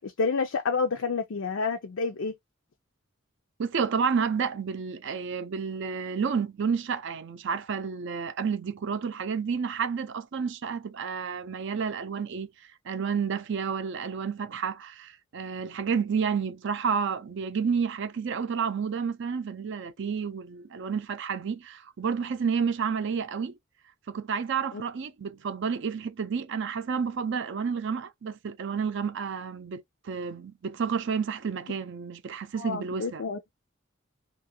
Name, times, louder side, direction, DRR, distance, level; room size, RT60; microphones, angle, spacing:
voice 1, 0.0-2.4 24.7-24.8 32.5-33.4, left 4 dB, 80° left, 0.5 m, -29 dB
voice 2, 3.6-12.5 12.9-23.6 24.1-33.2, right 6 dB, 65° right, 0.5 m, -30 dB
2.8 x 2.4 x 2.7 m
head